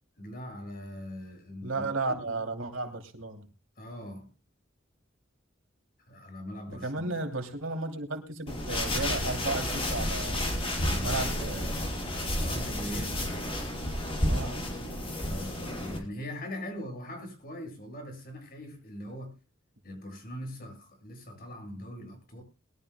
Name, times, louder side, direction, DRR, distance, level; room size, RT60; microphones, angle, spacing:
voice 1, 0.2-2.4 3.8-4.3 6.0-7.1 10.8-11.3 12.3-13.2 15.2-19.3 19.8-22.4, equal, 50° left, 7.4 m, -41 dB
voice 2, 1.6-3.5 6.7-10.5 11.0-11.9 12.9-13.3 14.2-14.7, right 2 dB, 80° right, 2.9 m, -34 dB
sound 1, 8.5-16.0, left 1 dB, 30° left, 4.9 m, -31 dB
22.0 x 13.0 x 2.2 m
head